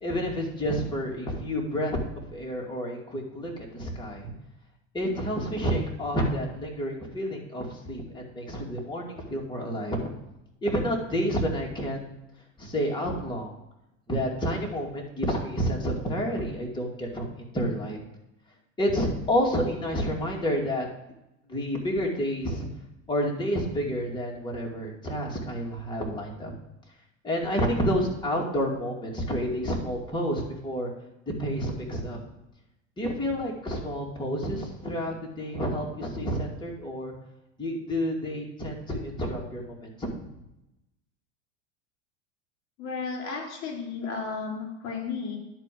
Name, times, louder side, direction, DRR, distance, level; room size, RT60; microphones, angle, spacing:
voice 1, 0.0-4.3 4.9-10.1 10.6-12.0 12.6-13.5 14.1-18.0 18.8-20.9 21.5-22.7 23.1-26.5 27.2-30.9 31.4-32.2 33.0-37.1 37.6-40.1, equal, 10° left, -2 dB, 2.5 m, -29 dB
voice 2, 42.8-45.4, left 5 dB, 50° left, -1 dB, 3.3 m, -33 dB
10.5 x 4.7 x 7.7 m, 0.89 s
supercardioid pair, 120°, 38 cm